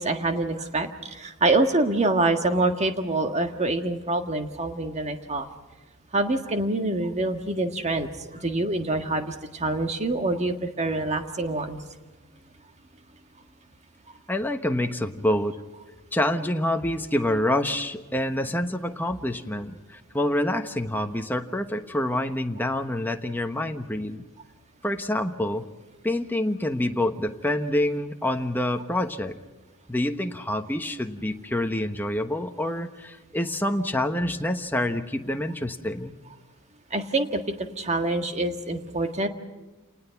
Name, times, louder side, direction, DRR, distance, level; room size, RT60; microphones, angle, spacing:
voice 1, 0.0-5.5 6.1-11.8 36.9-39.3, right 2 dB, 30° right, 6 dB, 1.7 m, -26 dB
voice 2, 14.3-15.6 16.1-24.2 24.8-25.6 26.0-29.4 29.9-36.1, left 1 dB, 10° left, 5 dB, 1.1 m, -27 dB
29.0 x 19.5 x 5.9 m, 1.2 s
head